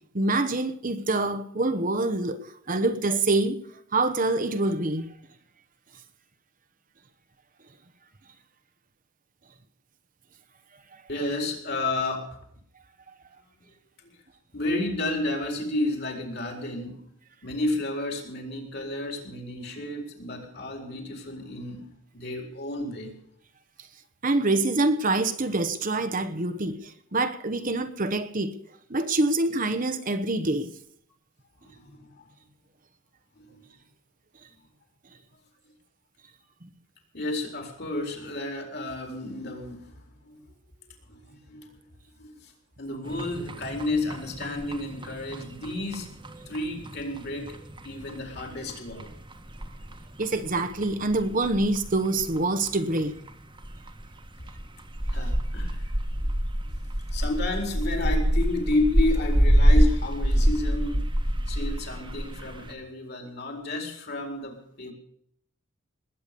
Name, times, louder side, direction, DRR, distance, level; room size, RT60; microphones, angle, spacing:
voice 1, 0.1-2.4 2.7-3.6 3.9-5.1 24.2-26.8 27.1-28.5 28.9-30.7 50.2-53.1, right 2 dB, 40° right, 1.0 m, -25 dB
voice 2, 11.1-12.4 13.5-13.6 14.0-14.1 14.5-17.0 17.4-23.1 26.5-26.6 31.6-32.3 33.4-33.6 37.1-40.4 41.1-41.8 42.2-42.5 42.8-46.1 46.5-49.1 55.1-55.8 56.2-56.3 57.1-61.0 61.5-64.9, left 2 dB, 50° left, 4.2 m, -31 dB
sound 1, 43.0-62.7, equal, 25° right, 1.4 m, -27 dB
20.0 x 9.2 x 6.8 m
head